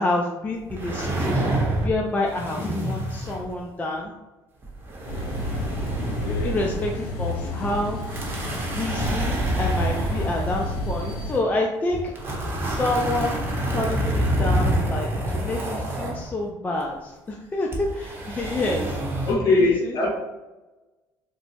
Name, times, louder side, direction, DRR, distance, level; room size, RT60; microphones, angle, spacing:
voice 1, 0.0-4.1 6.4-8.0 8.7-12.4 12.6-13.4 13.7-19.0, left 2 dB, 20° left, 0 dB, 0.3 m, -28 dB
sound 1, 0.7-2.0 2.3-3.6 4.6-6.9 7.3-7.4 8.0-11.2 11.9-16.3 17.7-19.3, right 1 dB, 25° right, 0.8 m, -27 dB
sound 2, 5.1-11.4, left 1 dB, 85° left, 0.8 m, -30 dB
voice 2, 6.0-6.6 19.2-20.1, left 2 dB, 50° left, -2 dB, 1.0 m, -22 dB
4.4 x 2.0 x 2.6 m, 1.1 s
cardioid pair, 120°, 8 cm